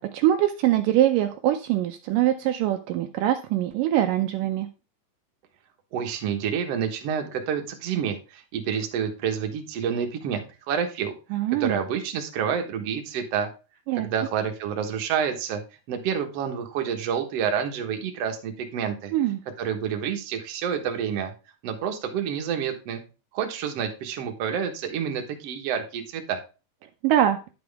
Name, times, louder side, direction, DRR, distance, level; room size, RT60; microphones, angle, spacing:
voice 1, 0.0-4.7 11.3-11.8 13.9-14.1 19.1-19.4 27.0-27.4, right 12 dB, 80° right, 6 dB, 2.1 m, -23 dB
voice 2, 5.9-11.1 11.6-13.5 14.0-15.6 15.9-19.1 19.6-21.3 21.6-23.0 23.3-26.4, right 7 dB, 55° right, 4 dB, 1.9 m, -28 dB
10.5 x 6.1 x 3.4 m, 0.32 s
omnidirectional pair, 4.1 m